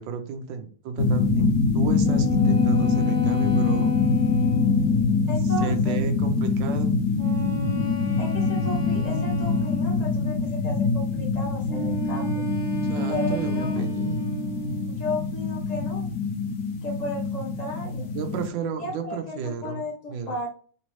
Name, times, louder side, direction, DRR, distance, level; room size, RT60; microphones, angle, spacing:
voice 1, 0.0-3.9 5.4-6.9 12.9-14.4 18.1-19.8 20.1-20.3, right 6 dB, 85° right, 6 dB, 1.3 m, -33 dB
sound 1, 1.0-18.5, left 4 dB, 70° left, 1.0 m, -24 dB
sound 2, 2.0-5.5 7.2-10.1 11.7-15.0, left 3 dB, 55° left, 1.5 m, -31 dB
voice 2, 5.3-6.0 8.2-12.4 13.1-13.8 14.9-16.1 16.8-18.1 18.8-20.5, left 1 dB, 35° left, -2 dB, 0.7 m, -34 dB
3.5 x 3.0 x 3.0 m, 0.43 s
omnidirectional pair, 2.0 m